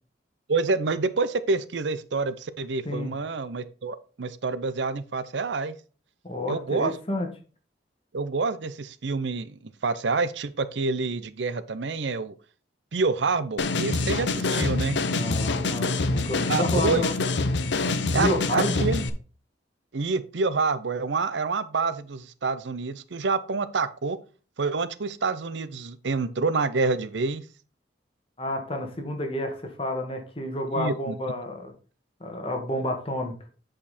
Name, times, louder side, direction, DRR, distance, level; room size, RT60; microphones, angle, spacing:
voice 1, 0.5-5.7 6.5-6.9 8.1-9.6 9.8-12.3 12.9-15.0 16.5-17.0 18.1-19.0 19.9-24.2 24.6-27.4 30.7-31.2, right 4 dB, 80° right, 14 dB, 0.6 m, -27 dB
voice 2, 6.2-7.3 15.0-17.1 18.1-18.8 28.4-31.7 32.2-33.3, left 1 dB, 30° left, 3 dB, 1.7 m, -30 dB
sound 1, 13.6-19.1, left 3 dB, 85° left, 0.9 m, -26 dB
8.5 x 5.1 x 4.3 m, 0.37 s
head